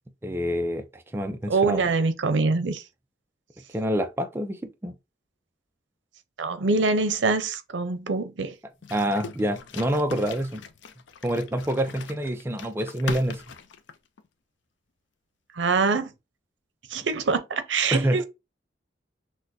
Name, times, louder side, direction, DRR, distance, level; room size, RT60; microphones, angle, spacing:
voice 1, 0.2-1.8 3.7-4.9 8.9-10.6 11.2-13.4 17.9-18.3, right 1 dB, 15° right, 0.4 m, -27 dB
voice 2, 1.5-2.8 6.4-8.5 15.5-16.1 16.9-18.3, right 3 dB, 85° right, 0.6 m, -24 dB
sound 1, 8.8-14.3, left 6 dB, 80° left, 0.5 m, -40 dB
6.1 x 2.2 x 2.6 m
head